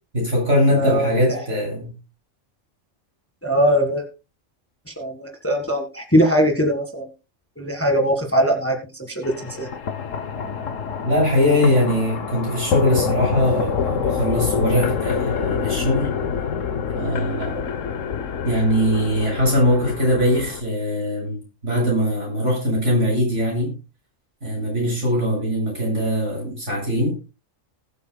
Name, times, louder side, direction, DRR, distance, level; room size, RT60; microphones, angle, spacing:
voice 1, 0.1-1.9 11.0-16.1 17.0-17.7 18.4-23.7 24.4-27.1, equal, 70° right, 8.0 m, -21 dB
voice 2, 0.7-1.4 3.4-4.0 4.9-7.1 7.6-9.3 9.6-9.7, equal, 10° left, 1.8 m, -21 dB
sound 1, 9.2-20.6, left 7 dB, 80° left, 1.3 m, -27 dB
20.0 x 8.4 x 2.3 m
omnidirectional pair, 1.3 m